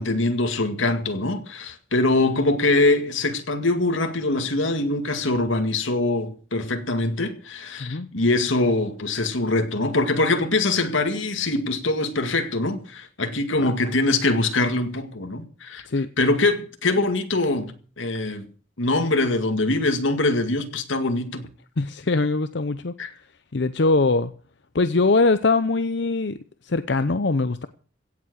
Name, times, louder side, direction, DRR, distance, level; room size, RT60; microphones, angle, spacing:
voice 1, 0.0-15.9 16.2-18.4 18.8-21.5 23.0-23.1, left 2 dB, 80° left, 2.1 m, -23 dB
voice 2, 21.8-22.9 23.5-24.3 24.7-26.4 26.6-27.7, left 3 dB, 60° left, 0.7 m, -22 dB
16.5 x 7.7 x 8.1 m
head